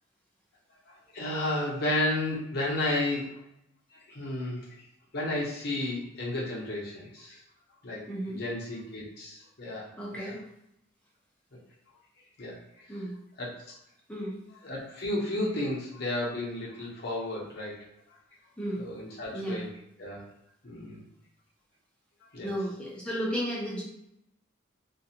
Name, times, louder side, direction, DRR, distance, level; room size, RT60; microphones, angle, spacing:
voice 1, 0.9-3.3 3.9-4.7 5.1-7.4 7.8-8.0 8.3-9.9 10.1-10.3 12.4-12.6 13.4-13.5 14.6-17.8 18.8-19.7 20.0-20.2 20.6-21.0 22.3-22.5, left 1 dB, 50° left, -4 dB, 0.8 m, -32 dB
voice 2, 8.1-8.4 10.0-10.4 12.9-13.2 14.1-14.4 18.6-18.9 19.3-19.7 22.4-23.8, equal, 5° left, -5 dB, 0.6 m, -33 dB
2.5 x 2.3 x 2.8 m, 0.79 s
head